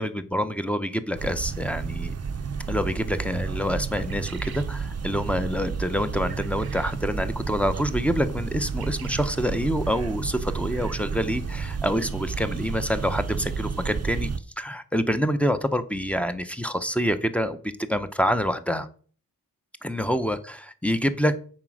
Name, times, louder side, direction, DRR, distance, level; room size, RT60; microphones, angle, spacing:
voice 1, 0.0-2.1 2.7-14.3 14.6-18.9 19.8-21.4, equal, 5° left, 10 dB, 0.7 m, -26 dB
sound 1, 1.1-14.4, right 5 dB, 45° right, 0.6 m, -31 dB
sound 2, 3.9-4.7 6.3-7.0 8.7-9.3, right 8 dB, 85° right, 0.7 m, -45 dB
7.4 x 5.0 x 6.2 m, 0.43 s
wide cardioid pair, 110°, 36 cm